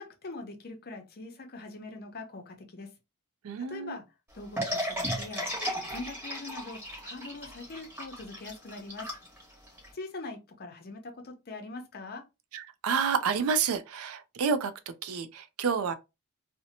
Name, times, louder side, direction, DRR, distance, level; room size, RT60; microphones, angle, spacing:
voice 1, 0.0-2.9 3.6-4.0 4.3-9.1 9.9-12.2, left 3 dB, 45° left, 0.6 m, -42 dB
voice 2, 3.4-4.0 12.5-14.7 15.0-15.9, right 6 dB, 70° right, 0.4 m, -29 dB
sound 1, 4.6-9.9, equal, 10° right, 1.1 m, -35 dB
2.7 x 2.1 x 2.7 m
head